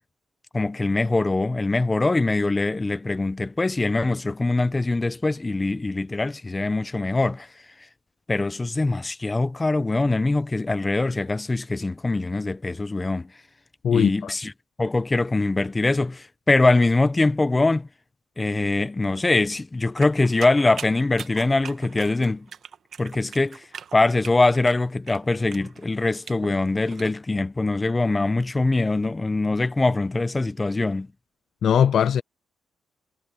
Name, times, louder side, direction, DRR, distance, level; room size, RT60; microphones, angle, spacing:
voice 1, 0.5-7.5 8.3-13.3 13.9-14.5 14.8-17.9 18.4-22.5 23.0-23.6 23.9-31.1, left 2 dB, 20° left, 1.1 m, -23 dB
voice 2, 13.8-14.3 31.6-32.2, left 8 dB, 60° left, 0.5 m, -20 dB
sound 1, 20.0-27.1, right 7 dB, 55° right, 1.5 m, -41 dB
cardioid pair, 90°, 0 cm